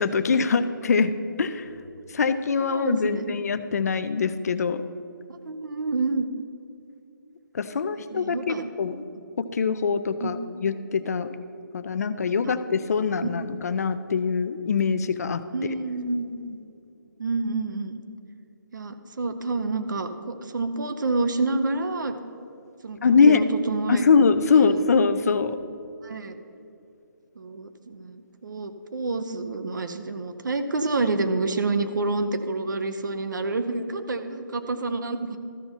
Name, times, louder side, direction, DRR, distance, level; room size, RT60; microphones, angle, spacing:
voice 1, 0.0-1.7 2.1-4.8 7.5-9.1 9.4-11.4 11.7-15.7 23.0-23.5 23.9-25.6, left 5 dB, 50° left, 11 dB, 0.5 m, -23 dB
voice 2, 2.7-3.3 5.3-6.3 8.1-8.7 10.2-10.5 12.5-12.6 13.2-13.3 15.5-16.6 17.2-18.0 18.7-22.2 22.8-23.0 23.3-24.0 24.5-24.8 26.0-26.3 27.4-35.4, right 3 dB, 65° right, 9 dB, 0.7 m, -28 dB
13.5 x 5.5 x 4.4 m, 2.7 s
hypercardioid pair, 165°, 11 cm